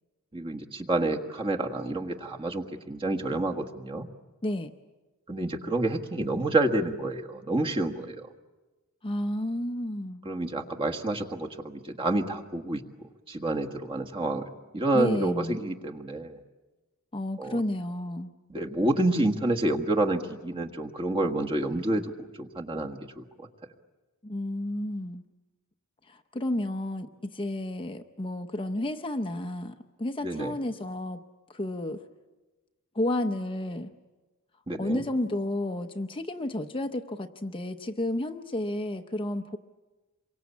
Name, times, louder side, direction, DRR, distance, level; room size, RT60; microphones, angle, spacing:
voice 1, 0.3-4.1 5.3-8.3 10.3-12.8 13.3-14.5 14.7-16.4 17.4-17.6 18.5-22.1 22.4-23.5 30.2-30.5 34.7-35.0, right 2 dB, 25° right, 2 dB, 1.6 m, -28 dB
voice 2, 9.0-10.3 14.9-15.6 17.1-18.3 24.2-25.2 26.1-31.2 31.5-32.0 32.9-33.9 34.8-39.6, left 1 dB, 25° left, 5 dB, 0.8 m, -31 dB
27.5 x 24.0 x 8.4 m, 1.2 s
head